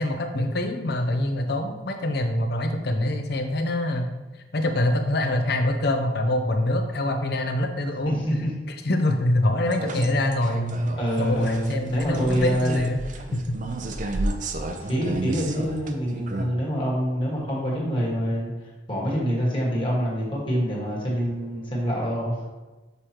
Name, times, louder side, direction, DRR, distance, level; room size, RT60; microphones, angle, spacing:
voice 1, 0.0-4.1 4.5-8.2 8.8-10.9 11.2-13.0 13.3-13.4, left 1 dB, 60° left, 5 dB, 0.7 m, -25 dB
voice 2, 8.0-8.5 11.0-12.8 14.8-18.5 18.9-22.5, equal, 30° left, -4 dB, 1.6 m, -26 dB
sound 1, 9.7-16.5, right 2 dB, 45° right, 0.5 m, -32 dB
6.7 x 4.9 x 3.0 m, 1.2 s
head